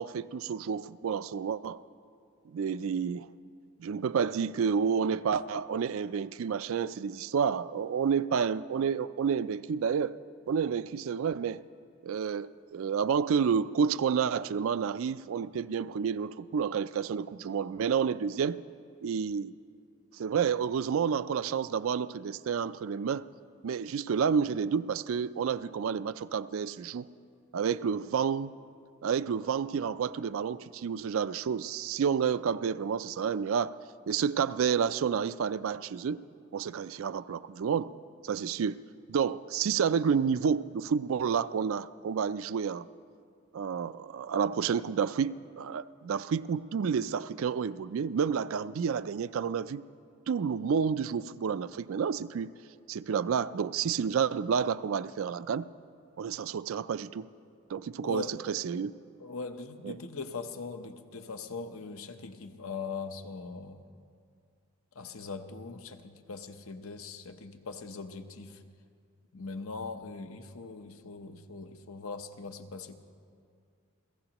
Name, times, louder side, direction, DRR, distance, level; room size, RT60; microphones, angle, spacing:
voice 1, 0.0-1.8 2.5-3.3 3.8-10.2 10.5-11.6 12.0-18.6 19.0-19.5 20.1-23.3 23.6-27.1 27.5-28.5 29.0-33.8 34.1-36.2 36.5-37.9 38.2-38.8 39.1-42.9 43.5-49.8 50.3-52.5 52.9-55.7 56.2-57.3 57.7-58.9 59.8-60.0, right 6 dB, 75° right, 0.4 m, -30 dB
voice 2, 58.0-58.4 59.2-63.8 64.9-68.6 69.3-73.0, left 4 dB, 90° left, 1.0 m, -41 dB
29.5 x 16.5 x 3.0 m
head